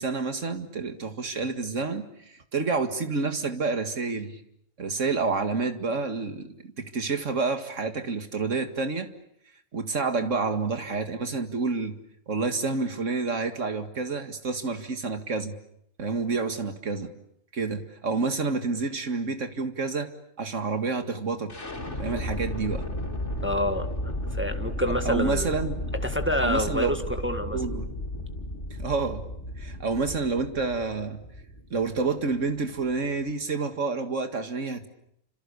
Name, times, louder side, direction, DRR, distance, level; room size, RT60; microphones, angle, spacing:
voice 1, 0.0-4.4 4.8-9.1 9.7-11.9 12.3-15.6 16.0-17.1 17.5-20.1 20.4-21.5 22.0-22.9 25.1-25.8 26.4-26.9 27.5-27.9 28.8-29.3 29.6-31.2 31.7-34.9, right 4 dB, 85° right, 7 dB, 2.3 m, -29 dB
sound 1, 21.5-33.4, left 1 dB, 70° left, 4.0 m, -34 dB
voice 2, 23.4-25.5 26.0-27.6, left 1 dB, 10° right, 6 dB, 1.6 m, -28 dB
29.5 x 26.5 x 6.9 m, 0.74 s
omnidirectional pair, 1.3 m